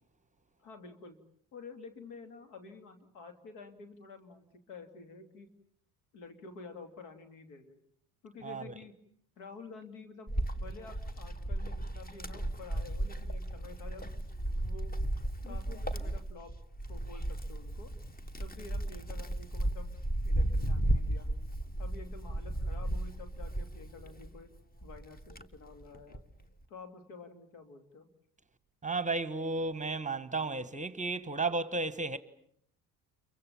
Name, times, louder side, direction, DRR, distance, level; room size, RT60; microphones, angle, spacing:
voice 1, 0.6-1.2 1.5-5.5 6.1-7.8 8.2-9.0 9.4-14.1 14.6-15.0 15.4-16.5 16.9-17.9 18.4-20.0 20.2-21.3 21.8-24.5 24.8-26.2 26.7-28.1, left 4 dB, 75° left, 3.0 m, -50 dB
Wind, 10.3-24.4 24.8-26.3, right 1 dB, 20° left, 1.6 m, -34 dB
voice 2, 28.8-32.2, right 3 dB, 15° right, 1.3 m, -33 dB
29.0 x 23.5 x 7.3 m
hypercardioid pair, 65°, 47 cm